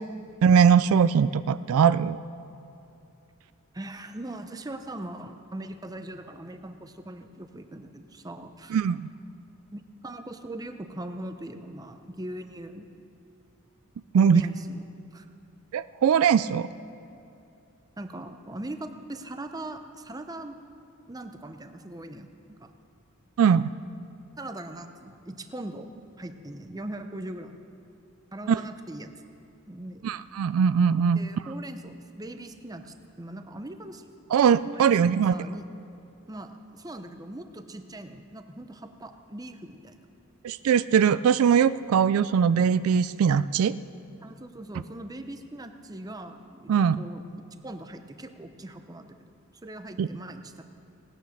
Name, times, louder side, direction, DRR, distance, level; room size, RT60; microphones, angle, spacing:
voice 1, 0.4-2.2 8.7-9.0 14.1-14.4 15.7-16.7 23.4-23.7 28.5-28.6 30.0-31.2 34.3-35.3 40.4-43.8 46.7-47.0 50.0-50.1, right 7 dB, 75° right, 15 dB, 0.3 m, -21 dB
voice 2, 3.7-8.8 9.7-12.8 14.1-15.3 18.0-20.6 21.1-22.3 22.6-22.7 24.4-25.9 26.2-27.6 28.3-29.1 29.7-30.0 31.1-34.0 34.6-35.6 36.3-40.1 44.2-47.2 47.6-49.3 49.6-50.6, right 1 dB, 15° right, 7 dB, 0.7 m, -40 dB
18.0 x 9.5 x 6.5 m, 2.7 s
head